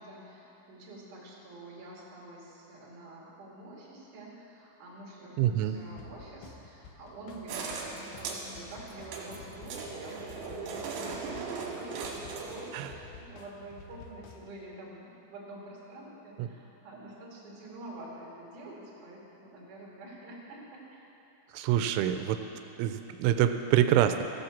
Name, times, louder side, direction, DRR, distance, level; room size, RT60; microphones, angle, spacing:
voice 1, 0.0-21.0, right 1 dB, 50° right, -4 dB, 3.4 m, -47 dB
voice 2, 5.4-5.8 12.7-12.9 16.4-16.5 21.5-22.4 22.8-24.2, right 11 dB, 90° right, 8 dB, 3.0 m, -26 dB
sound 1, 5.7-14.5, left 4 dB, 90° left, 2.2 m, -51 dB
sound 2, 7.5-13.0, right 4 dB, 70° right, 3.6 m, -39 dB
15.0 x 8.0 x 7.2 m, 3.0 s
omnidirectional pair, 5.5 m